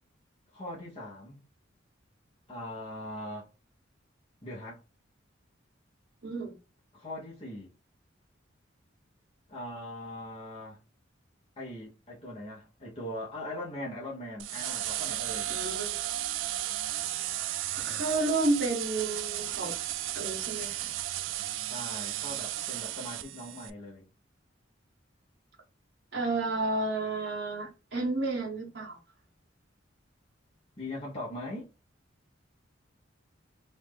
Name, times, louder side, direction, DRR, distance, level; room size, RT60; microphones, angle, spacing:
voice 1, 0.5-1.4 2.5-3.5 4.4-4.8 6.9-7.7 9.5-10.8 11.6-15.5 21.7-24.1 30.8-31.7, left 1 dB, 30° left, 1.1 m, -40 dB
voice 2, 6.2-6.6 15.5-16.0 17.8-19.8 20.1-20.9 26.1-29.0, right 2 dB, 60° right, 1.5 m, -31 dB
sound 1, 14.4-23.7, right 13 dB, 75° right, 0.3 m, -34 dB
3.1 x 2.7 x 3.6 m
head